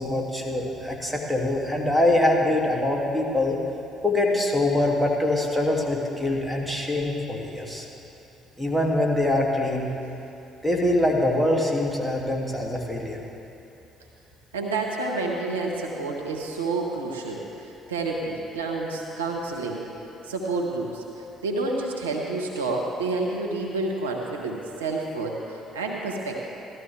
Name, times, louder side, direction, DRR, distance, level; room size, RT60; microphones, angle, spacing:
voice 1, 0.0-3.6 4.0-7.8 8.6-9.9 10.6-13.2, left 1 dB, ahead, -2 dB, 2.6 m, -24 dB
voice 2, 14.5-17.4 17.9-19.8 20.3-21.0 21.4-26.5, right 3 dB, 90° right, 0 dB, 1.0 m, -29 dB
16.5 x 13.0 x 3.5 m, 2.8 s
hypercardioid pair, 50°, 0 cm